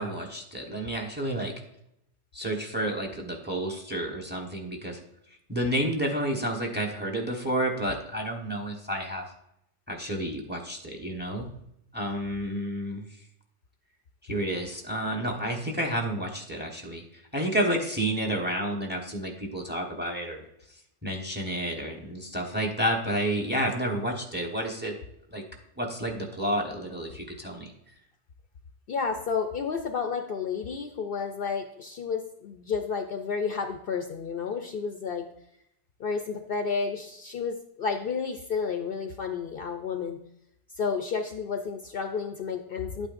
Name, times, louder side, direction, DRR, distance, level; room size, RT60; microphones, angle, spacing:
voice 1, 0.0-1.5 2.3-5.0 5.5-9.2 9.9-11.5 11.9-13.1 14.2-20.5 21.0-24.9 25.3-25.4 25.8-27.7, right 1 dB, 10° right, 2 dB, 1.2 m, -30 dB
voice 2, 28.9-35.3 36.0-40.2 40.7-43.1, left 5 dB, 60° left, 5 dB, 0.7 m, -31 dB
10.5 x 8.7 x 2.6 m, 0.79 s
omnidirectional pair, 1.2 m